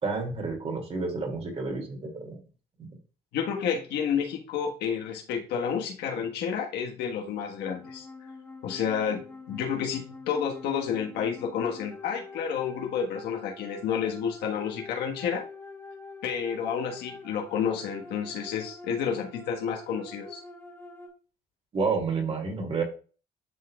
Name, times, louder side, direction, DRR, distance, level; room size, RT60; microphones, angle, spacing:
voice 1, 0.0-2.4 2.8-2.9 21.7-22.8, right 4 dB, 35° right, 1 dB, 2.3 m, -30 dB
voice 2, 3.3-8.1 8.6-15.4 16.2-20.4, left 7 dB, 80° left, 2 dB, 1.4 m, -30 dB
sound 1, 7.7-21.1, left 3 dB, 10° left, 1.8 m, -45 dB
11.0 x 3.9 x 2.3 m, 0.36 s
cardioid pair, 110°, 17 cm